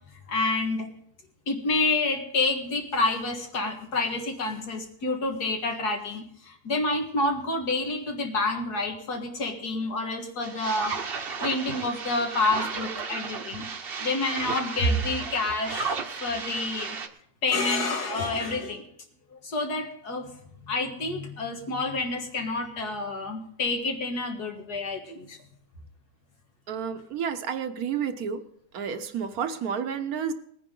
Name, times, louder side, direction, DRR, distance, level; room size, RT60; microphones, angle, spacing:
voice 1, 0.3-0.9 1.5-13.7 14.0-17.0 17.4-18.8 19.3-20.3 20.7-25.4, left 2 dB, 80° left, 3 dB, 2.2 m, -28 dB
sound 1, 10.4-17.1, right 5 dB, 45° right, 1.0 m, -34 dB
voice 2, 26.7-28.4 28.7-30.3, right 7 dB, 70° right, 9 dB, 1.3 m, -30 dB
19.5 x 9.9 x 3.8 m, 0.69 s
omnidirectional pair, 1.7 m